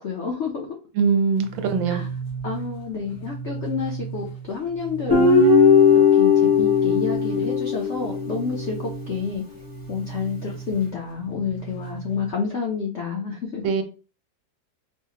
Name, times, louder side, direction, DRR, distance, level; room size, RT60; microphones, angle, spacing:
voice 1, 0.0-0.8 1.9-2.1 2.4-9.4 9.9-13.6, left 5 dB, 70° left, 0.6 m, -29 dB
voice 2, 1.0-2.0 13.6-13.8, right 5 dB, 85° right, 1.4 m, -22 dB
sound 1, 1.4-12.3, right 5 dB, 85° left, 1.7 m, -36 dB
Guitar, 5.1-8.4, left 5 dB, 25° right, 0.5 m, -17 dB
4.7 x 2.0 x 2.8 m
omnidirectional pair, 2.0 m